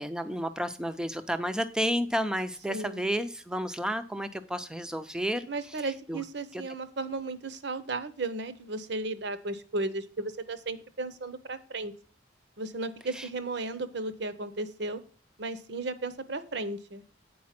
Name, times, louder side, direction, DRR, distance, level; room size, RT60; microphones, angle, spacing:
voice 1, 0.0-5.5 6.1-6.2 6.5-6.6 13.1-13.3, equal, 5° right, 10 dB, 0.5 m, -31 dB
voice 2, 2.7-3.0 5.5-11.9 12.6-15.0 15.4-17.0, right 2 dB, 60° right, 12 dB, 0.8 m, -35 dB
8.6 x 5.0 x 5.9 m, 0.41 s
head